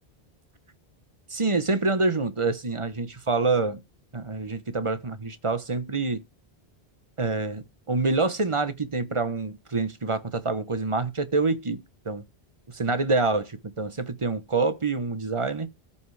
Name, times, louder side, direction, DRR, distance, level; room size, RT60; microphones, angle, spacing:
voice 1, 1.3-3.8 4.1-6.2 7.2-12.2 12.7-15.7, right 3 dB, 30° right, 1.0 m, -26 dB
14.0 x 5.6 x 3.3 m
omnidirectional pair, 1.0 m